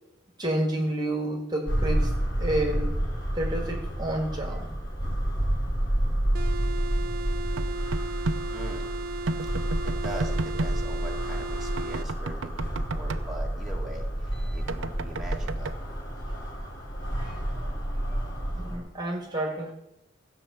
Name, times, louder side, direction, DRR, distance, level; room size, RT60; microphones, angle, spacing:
voice 1, 0.4-2.1 2.4-2.9 3.3-4.7 15.8-16.4 17.1-19.7, right 1 dB, 20° right, 1 dB, 1.8 m, -31 dB
sound 1, 1.7-18.8, right 1 dB, 65° left, 3.8 m, -29 dB
sound 2, 6.3-12.1, right 3 dB, 50° right, 0.4 m, -36 dB
sound 3, 7.6-8.4 9.3-10.7 11.8-13.2 14.7-15.7, right 3 dB, 80° right, 0.7 m, -32 dB
voice 2, 8.5-8.9 9.5-15.8, right 1 dB, ahead, -3 dB, 2.0 m, -42 dB
15.5 x 5.9 x 8.1 m, 0.92 s
head